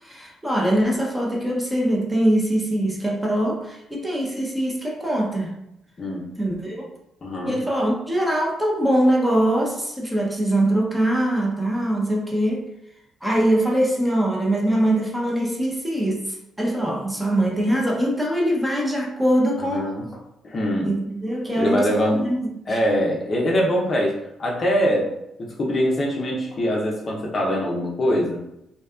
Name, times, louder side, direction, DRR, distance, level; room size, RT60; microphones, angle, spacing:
voice 1, 0.0-5.6 6.4-6.9 7.4-12.6 13.2-19.9 20.8-22.8, right 1 dB, 10° right, -2 dB, 0.6 m, -22 dB
voice 2, 7.2-7.6 19.7-20.1 20.4-20.9 21.5-22.3 22.7-25.1 25.4-28.4, equal, 40° left, -2 dB, 0.5 m, -23 dB
2.6 x 2.3 x 2.3 m, 0.82 s
cardioid pair, 90°, 0 cm